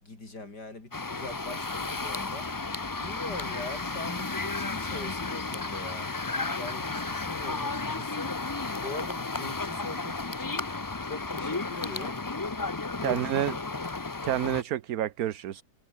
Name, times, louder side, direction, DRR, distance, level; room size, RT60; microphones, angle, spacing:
voice 1, 0.0-2.5 3.0-6.1 6.5-8.3 8.8-10.6 11.0-12.2 13.0-13.6, left 3 dB, 90° left, 6.0 m, -42 dB
sound 1, 0.9-14.6, left 3 dB, 25° left, 0.4 m, -33 dB
voice 2, 13.0-13.5 14.2-15.6, right 11 dB, 65° right, 1.3 m, -29 dB
omnidirectional pair, 1.7 m